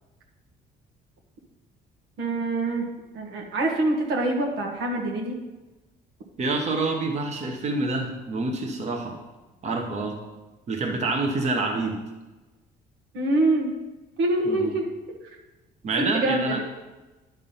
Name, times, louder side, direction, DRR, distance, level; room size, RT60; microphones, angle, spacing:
voice 1, 2.2-2.9 3.1-5.4 13.1-13.7 14.2-14.9 16.1-16.6, right 2 dB, 85° right, -1 dB, 1.6 m, -25 dB
voice 2, 6.4-9.2 9.6-10.2 10.7-12.0 14.4-14.7 15.8-16.6, right 3 dB, 40° right, 2 dB, 1.1 m, -27 dB
10.5 x 3.6 x 5.6 m, 1.1 s
cardioid pair, 110°, 17 cm